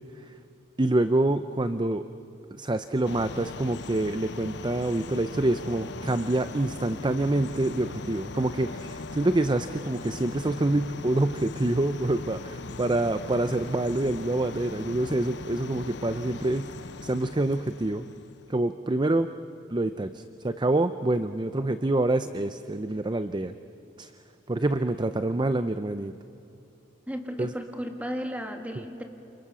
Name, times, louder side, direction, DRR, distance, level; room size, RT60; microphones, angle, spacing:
voice 1, 0.8-2.0 2.5-16.7 17.0-18.1 18.5-19.3 19.7-23.5 24.0-24.1 24.5-26.1 27.4-27.5, right 2 dB, 25° right, 10 dB, 0.6 m, -26 dB
sound 1, 3.0-18.5, left 3 dB, 65° left, 0.9 m, -40 dB
voice 2, 27.1-29.0, equal, 10° right, 4 dB, 2.3 m, -34 dB
29.0 x 28.5 x 6.9 m, 2.9 s
head